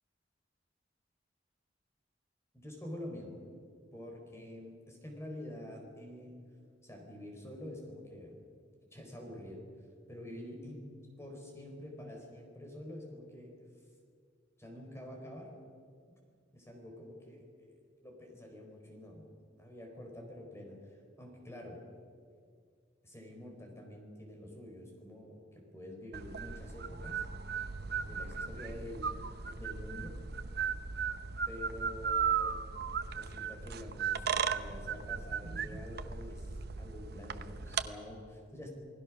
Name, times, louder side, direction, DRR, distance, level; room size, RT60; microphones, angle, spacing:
voice 1, 2.5-3.4 3.9-6.4 6.8-8.3 8.9-9.6 10.1-10.9 11.2-13.5 14.6-15.5 16.5-17.7 18.0-19.3 19.6-21.8 23.0-27.3 28.0-30.2 31.5-32.7 33.1-38.7, left 1 dB, 15° left, 1 dB, 4.3 m, -47 dB
sound 1, 26.1-37.8, right 6 dB, 60° right, 0.9 m, -36 dB
28.5 x 19.0 x 6.2 m, 2.1 s
head